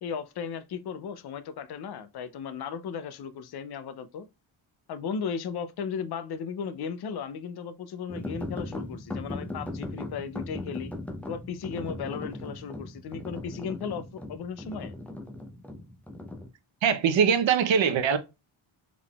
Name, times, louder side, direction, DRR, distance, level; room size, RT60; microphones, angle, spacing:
voice 1, 0.0-4.3 4.9-10.9 11.3-14.9, left 6 dB, 50° left, 0.5 m, -36 dB
sound 1, 8.1-16.5, left 2 dB, 5° left, 0.5 m, -38 dB
voice 2, 16.8-18.2, right 7 dB, 65° right, 0.7 m, -22 dB
3.7 x 3.6 x 2.3 m
wide cardioid pair, 175°, 50 cm